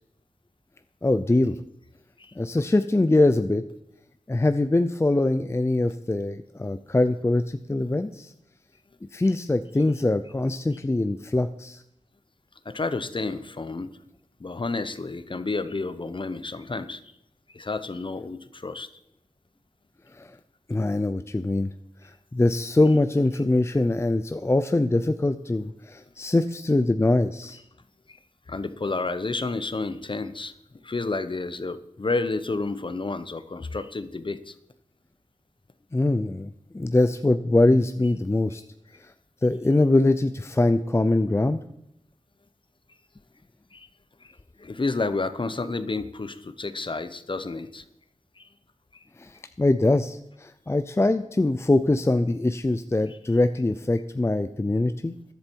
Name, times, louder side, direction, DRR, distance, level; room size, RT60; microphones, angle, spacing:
voice 1, 1.0-1.6 2.4-3.6 4.3-8.3 9.1-11.8 20.1-20.3 20.7-21.7 22.3-27.6 35.9-38.6 39.4-41.6 49.2-55.2, left 2 dB, 20° left, 10 dB, 0.5 m, -23 dB
voice 2, 12.6-13.9 14.4-17.0 17.5-18.9 28.1-28.2 28.5-30.5 30.8-34.5 43.7-43.9 44.2-44.3 44.6-47.8 48.4-48.5 48.9-49.0, left 3 dB, 40° left, 12 dB, 0.9 m, -30 dB
14.0 x 11.0 x 4.6 m, 0.77 s
wide cardioid pair, 90°, 13 cm